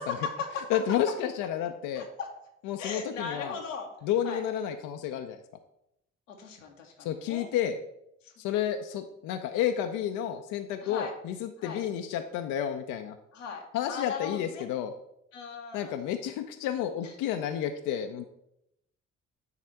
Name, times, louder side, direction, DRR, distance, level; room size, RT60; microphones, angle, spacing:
voice 1, 0.0-0.6 1.9-2.3 2.8-3.9 4.2-4.4 6.3-7.5 8.2-8.3 10.8-11.1 11.6-11.8 13.3-14.6 15.3-16.0 17.0-17.1, left 5 dB, 80° left, 1 dB, 1.0 m, -38 dB
voice 2, 0.7-2.0 2.7-3.6 4.0-5.4 7.0-7.7 8.4-13.2 13.7-14.9 15.7-18.2, left 10 dB, 55° left, 7 dB, 0.6 m, -31 dB
9.6 x 4.1 x 4.4 m, 0.81 s
figure-of-eight pair, 45°, 37 cm